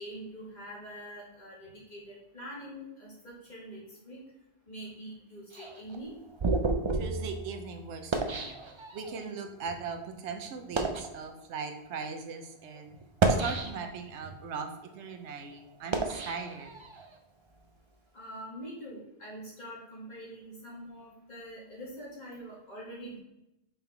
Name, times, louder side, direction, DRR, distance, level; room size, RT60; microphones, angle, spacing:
voice 1, 0.0-4.2 4.7-6.1 18.1-23.2, equal, 40° left, -6 dB, 2.3 m, -44 dB
sound 1, 5.5-9.2 9.9-10.1 10.6-11.1 11.9-12.1 13.0-14.1 14.6-17.1, right 3 dB, 40° right, 0.4 m, -31 dB
voice 2, 6.9-8.6 8.9-12.9 13.3-14.7 14.9-16.7, right 5 dB, 85° right, 6 dB, 1.0 m, -39 dB
5.8 x 3.6 x 4.5 m, 0.88 s
omnidirectional pair, 1.1 m